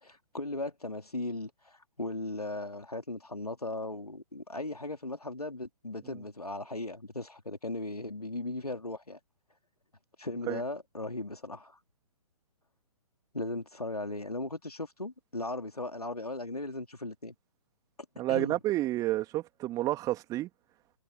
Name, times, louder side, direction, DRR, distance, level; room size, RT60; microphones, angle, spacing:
voice 1, 0.0-9.2 10.2-11.8 13.3-17.3 18.3-18.6, left 2 dB, 85° left, 2.8 m, -37 dB
voice 2, 18.2-20.5, right 15 dB, 20° right, 2.5 m, -30 dB
figure-of-eight pair, 125°, 19 cm